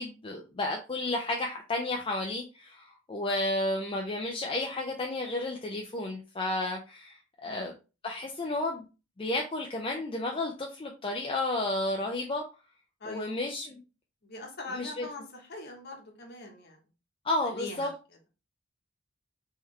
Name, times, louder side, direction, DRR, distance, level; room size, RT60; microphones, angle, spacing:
voice 1, 0.0-7.7 8.0-8.8 9.2-12.4 13.1-13.8 14.7-15.1 17.2-17.9, left 2 dB, 25° left, 0.5 m, -32 dB
voice 2, 13.0-13.4 14.2-16.8 17.4-17.9, left 2 dB, 50° left, 1.1 m, -42 dB
3.7 x 3.2 x 3.2 m
head